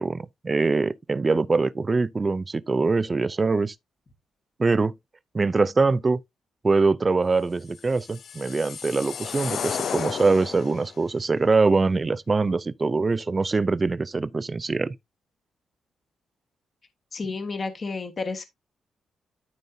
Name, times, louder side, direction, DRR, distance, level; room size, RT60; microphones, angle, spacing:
voice 1, 0.0-3.7 4.6-4.9 5.3-6.2 6.6-15.0, right 3 dB, 20° right, 0.4 m, -23 dB
sound 1, 7.8-11.0, left 7 dB, 50° left, 0.4 m, -33 dB
voice 2, 17.1-18.4, left 4 dB, 30° left, 1.3 m, -31 dB
12.5 x 5.3 x 2.7 m
wide cardioid pair, 170°, 0 cm